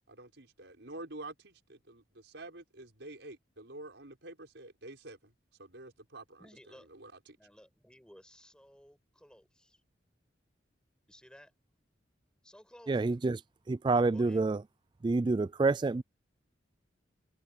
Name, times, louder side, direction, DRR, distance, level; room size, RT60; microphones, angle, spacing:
voice 1, 0.1-5.3 5.6-6.5 6.9-7.4, right 2 dB, 75° right, 5.7 m, -48 dB
voice 2, 6.4-6.9 7.4-9.8 11.1-11.5 12.4-13.1 13.9-14.4, equal, 5° left, 6.6 m, -57 dB
voice 3, 12.9-13.4 13.7-14.6 15.0-16.0, right 3 dB, 25° right, 0.3 m, -28 dB
head